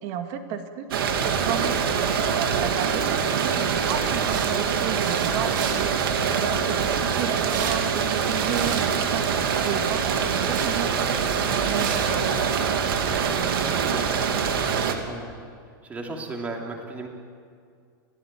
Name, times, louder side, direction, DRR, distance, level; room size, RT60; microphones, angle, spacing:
voice 1, 0.0-9.2 9.6-11.0 11.6-12.4 13.2-13.8 14.1-14.3, right 8 dB, 35° right, 6 dB, 2.2 m, -33 dB
sound 1, 0.9-15.0, right 6 dB, 85° right, 3.3 m, -24 dB
sound 2, 3.2-12.6, right 7 dB, 60° right, 4.1 m, -38 dB
voice 2, 13.6-14.2 15.0-15.4 15.8-17.1, right 2 dB, 15° right, 1 dB, 3.2 m, -35 dB
29.0 x 17.5 x 9.4 m, 2.2 s
supercardioid pair, 170°, 12 cm